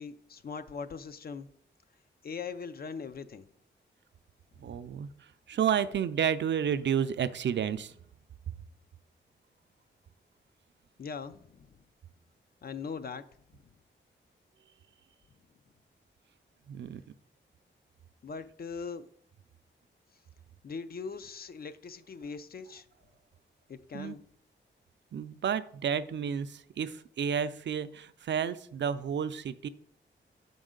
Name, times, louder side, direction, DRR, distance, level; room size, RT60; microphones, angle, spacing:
voice 1, 0.0-1.5 2.2-3.5 4.6-4.9 11.0-11.8 12.6-13.3 13.5-13.6 18.2-19.1 20.6-22.9 23.7-24.2, left 5 dB, 50° left, 0.5 m, -41 dB
voice 2, 4.6-8.0 16.7-17.0 23.9-24.2 25.1-29.7, right 8 dB, 65° right, 0.4 m, -31 dB
7.0 x 5.3 x 3.7 m
wide cardioid pair, 110°, 20 cm